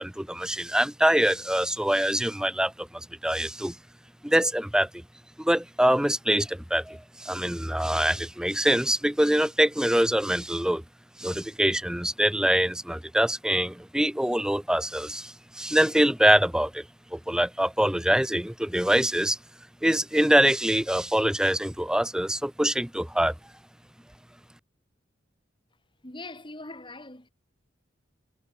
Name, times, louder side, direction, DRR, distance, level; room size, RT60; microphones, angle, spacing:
voice 1, 0.0-3.7 4.2-4.9 5.4-10.8 11.2-16.8 17.1-19.4 19.8-23.3, right 1 dB, 5° right, 0.7 m, -24 dB
voice 2, 26.0-27.3, left 2 dB, 25° left, 4.4 m, -41 dB
head